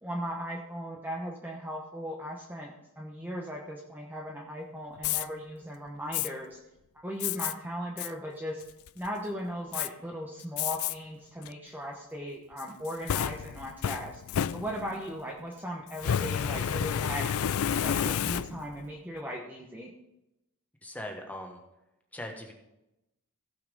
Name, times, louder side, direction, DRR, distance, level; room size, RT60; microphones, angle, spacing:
voice 1, 0.0-6.6 7.0-8.6 8.9-14.2 14.5-17.5 17.8-19.9, equal, 10° right, -1 dB, 1.0 m, -38 dB
Fire, 5.0-5.3 6.1-6.3 7.2-7.5 8.0-8.1 8.6-9.1 9.7-9.9 10.6-10.9 11.4-11.5 12.6-15.1 15.9-18.8, left 9 dB, 70° left, 0.4 m, -30 dB
voice 2, 20.8-21.6 22.1-22.5, left 1 dB, 5° left, 2 dB, 1.3 m, -40 dB
15.5 x 5.7 x 5.3 m, 0.91 s
head